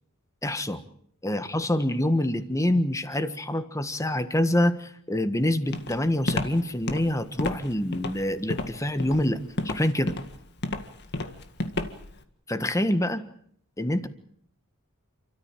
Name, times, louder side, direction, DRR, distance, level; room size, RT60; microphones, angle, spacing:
voice 1, 0.4-0.8 1.2-10.2 12.5-13.2 13.8-14.1, left 1 dB, 15° left, 10 dB, 1.5 m, -26 dB
Walk footsteps, 5.7-12.2, left 2 dB, 50° left, 2.0 m, -31 dB
29.5 x 13.5 x 9.1 m, 0.66 s
head